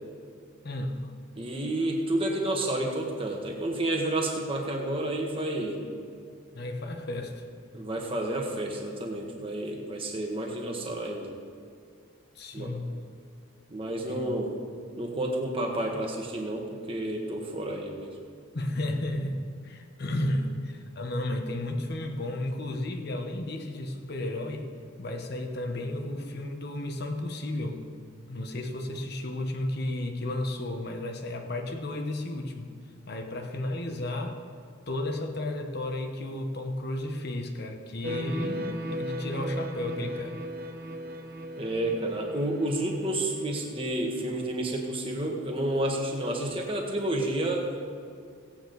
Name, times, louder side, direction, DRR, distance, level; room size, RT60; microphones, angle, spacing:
voice 1, 0.6-1.1 6.5-7.5 12.3-13.0 14.0-14.4 18.5-24.7 25.0-27.8 28.3-32.7 33.1-34.4 34.9-40.4, left 1 dB, 50° left, 4 dB, 1.1 m, -33 dB
voice 2, 1.3-5.8 7.7-11.3 12.5-12.7 13.7-14.5 15.0-18.1 41.6-47.7, right 1 dB, 25° right, 0 dB, 1.6 m, -30 dB
sound 1, 38.0-44.7, equal, 45° right, 0.8 m, -37 dB
17.0 x 8.9 x 4.0 m, 2.3 s
head